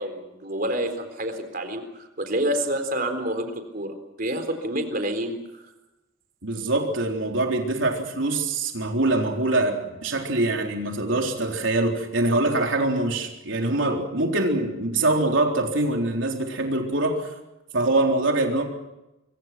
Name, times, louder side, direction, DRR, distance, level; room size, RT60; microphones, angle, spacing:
voice 1, 0.0-5.7, right 1 dB, 50° right, 7 dB, 3.9 m, -28 dB
voice 2, 6.4-17.3 17.7-18.6, right 2 dB, 80° right, 2 dB, 4.0 m, -24 dB
26.5 x 24.5 x 6.0 m, 0.97 s
head